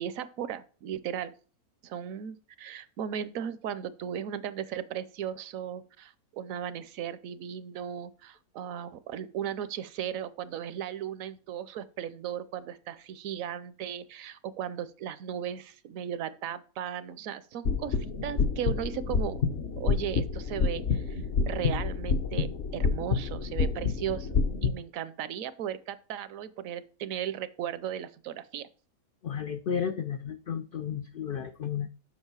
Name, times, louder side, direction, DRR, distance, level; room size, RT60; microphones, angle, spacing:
voice 1, 0.0-1.3 1.8-19.4 19.8-24.3 24.6-28.7, right 9 dB, 75° right, 15 dB, 1.0 m, -36 dB
sound 1, 17.7-24.7, left 5 dB, 55° left, 0.9 m, -28 dB
voice 2, 29.2-31.9, left 7 dB, 90° left, 8 dB, 0.4 m, -33 dB
7.4 x 5.1 x 4.6 m, 0.39 s
omnidirectional pair, 1.5 m